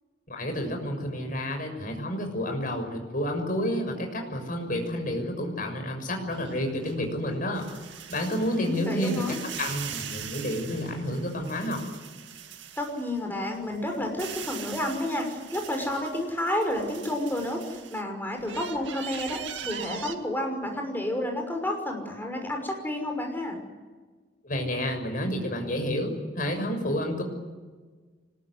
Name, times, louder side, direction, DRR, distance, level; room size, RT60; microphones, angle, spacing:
voice 1, 0.3-7.6 8.1-11.8 24.4-27.2, equal, 45° left, 4 dB, 6.7 m, -30 dB
sound 1, 6.3-13.2 13.6-18.0 18.4-20.2, right 8 dB, 75° right, 2.2 m, -41 dB
voice 2, 8.5-9.4 12.8-17.6 17.9-23.6, left 1 dB, 10° left, 3 dB, 5.9 m, -30 dB
25.0 x 21.5 x 9.7 m, 1.4 s
head